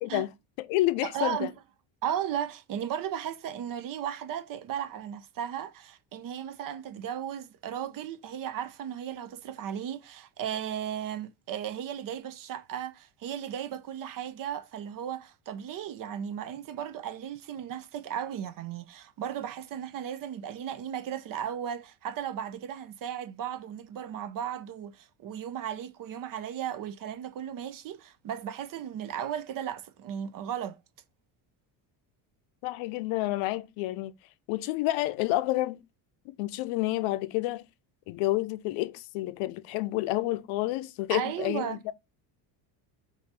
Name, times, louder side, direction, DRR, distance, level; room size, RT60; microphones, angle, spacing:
voice 1, 0.0-0.3 0.6-1.5 32.6-34.1 34.5-35.8 36.4-37.6 38.1-41.9, left 17 dB, 75° left, 0.6 m, -29 dB
voice 2, 1.0-1.5 2.0-30.8 41.1-41.8, right 9 dB, 45° right, 0.5 m, -35 dB
3.8 x 2.7 x 4.7 m
cardioid pair, 115°, 48 cm